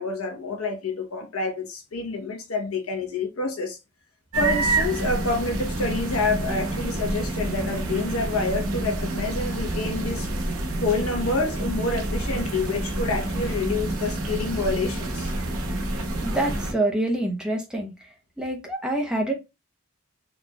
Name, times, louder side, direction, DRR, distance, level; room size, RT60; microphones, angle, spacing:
voice 1, 0.0-3.8 4.4-10.3 10.8-15.3, left 3 dB, 75° left, 0.8 m, -28 dB
sound 1, 4.3-16.7, right 2 dB, 70° right, 0.8 m, -28 dB
voice 2, 16.2-17.9 18.4-19.3, right 1 dB, 5° right, 0.7 m, -26 dB
4.1 x 3.0 x 2.2 m
head